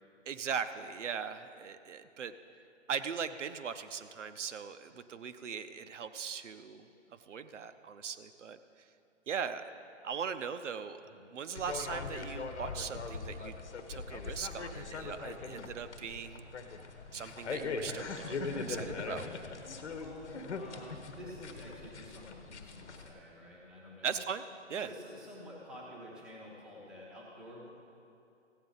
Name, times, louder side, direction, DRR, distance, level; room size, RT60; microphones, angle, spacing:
voice 1, 0.3-2.3 2.9-6.9 7.3-8.6 9.3-9.6 10.0-11.0 11.3-13.5 13.9-16.4 17.1-19.3 24.0-24.4 24.7-24.9, right 7 dB, 75° right, 10 dB, 0.7 m, -39 dB
sound 1, 11.5-23.1, left 4 dB, 65° left, 1.1 m, -41 dB
voice 2, 19.8-24.3 24.7-27.7, equal, ahead, -6 dB, 0.7 m, -50 dB
15.5 x 8.7 x 4.0 m, 2.6 s
hypercardioid pair, 150°, 37 cm